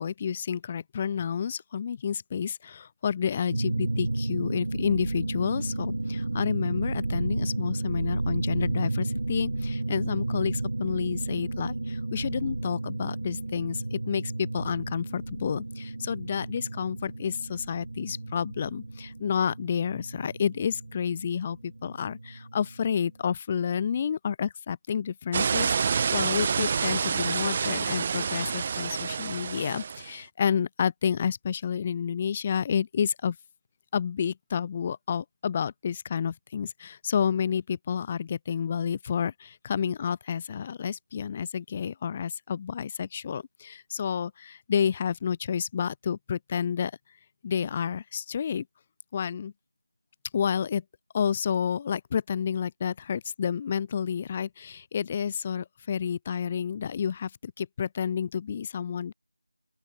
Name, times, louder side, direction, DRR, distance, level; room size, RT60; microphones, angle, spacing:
voice 1, 0.0-33.4 33.9-46.9 47.4-48.7 49.1-49.5 50.3-50.8 51.1-59.1, left 7 dB, 15° left, 0.9 m, -30 dB
sound 1, 3.5-23.0, right 2 dB, 45° right, 6.0 m, -32 dB
sound 2, 25.3-30.1, right 6 dB, 20° right, 0.5 m, -28 dB
open air
figure-of-eight pair, 170°, 0 cm